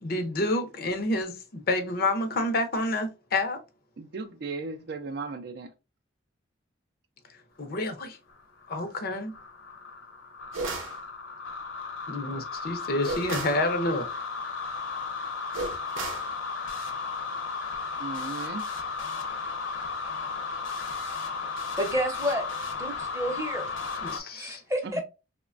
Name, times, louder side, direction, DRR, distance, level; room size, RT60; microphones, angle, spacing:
voice 1, 0.0-3.6 7.6-8.1 8.7-9.3 12.1-14.1 24.0-24.6 24.9-25.0, left 2 dB, 50° left, 0.5 m, -28 dB
voice 2, 4.0-5.7 18.0-18.7 24.8-25.0, right 4 dB, 55° right, 0.4 m, -36 dB
sound 1, 8.3-24.2, left 4 dB, 80° left, 0.9 m, -35 dB
sound 2, 10.5-11.0 13.0-13.6 15.5-16.3, right 3 dB, 85° right, 0.7 m, -33 dB
voice 3, 21.8-22.4 22.8-23.6 24.4-25.0, equal, 15° right, 0.7 m, -29 dB
3.0 x 2.1 x 2.4 m
head